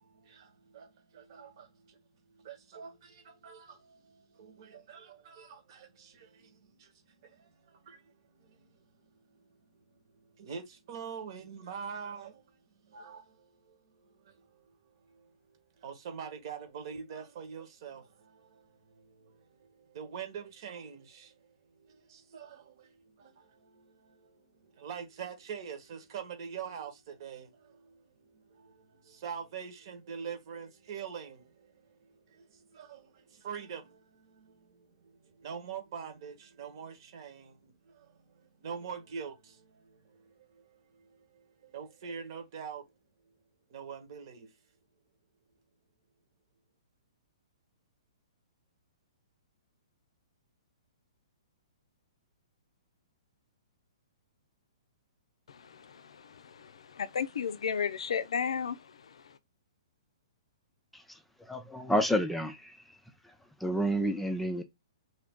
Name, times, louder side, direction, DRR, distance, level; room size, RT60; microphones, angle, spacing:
voice 1, 0.0-2.0 2.3-14.7 15.0-42.9 43.7-44.6, right 7 dB, 50° right, 1.2 m, -45 dB
voice 2, 55.5-59.4, left 7 dB, 75° left, 0.4 m, -35 dB
voice 3, 61.5-62.8 63.6-64.6, equal, 5° left, 0.4 m, -29 dB
2.7 x 2.5 x 3.6 m
hypercardioid pair, 130°, 3 cm